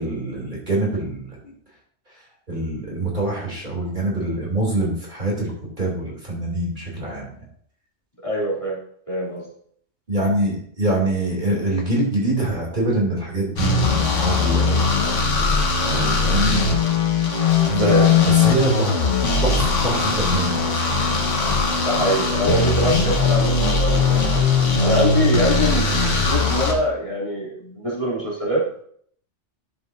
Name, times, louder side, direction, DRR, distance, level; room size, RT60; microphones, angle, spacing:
voice 1, 0.0-1.5 2.5-5.5 5.8-7.4 10.1-14.9 15.8-16.6 17.6-17.9 18.2-18.9 19.4-20.9, right 1 dB, 40° right, -3 dB, 2.9 m, -24 dB
voice 2, 8.2-8.8 9.1-9.5 17.8-18.3 21.8-24.5 24.8-28.8, equal, 25° left, -7 dB, 3.0 m, -24 dB
sound 1, 13.6-26.7, left 4 dB, 75° left, 1.6 m, -19 dB
11.0 x 7.3 x 2.6 m, 0.63 s
omnidirectional pair, 1.3 m